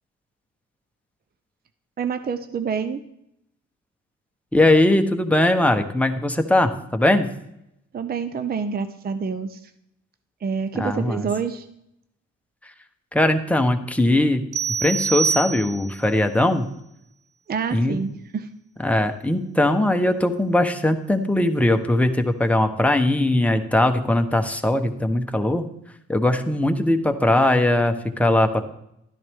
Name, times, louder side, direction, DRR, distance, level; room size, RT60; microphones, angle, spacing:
voice 1, 2.0-3.0 7.9-9.7 10.4-11.7 17.5-18.5, right 6 dB, 30° right, 10 dB, 0.6 m, -27 dB
voice 2, 4.5-7.3 10.7-11.3 13.1-14.4 14.8-16.7 17.7-18.0 18.8-25.6 26.1-28.6, left 1 dB, 5° left, 6 dB, 1.0 m, -20 dB
sound 1, 14.5-16.1, right 6 dB, 75° right, 0.7 m, -25 dB
12.5 x 10.5 x 3.6 m, 0.79 s
cardioid pair, 90°, 30 cm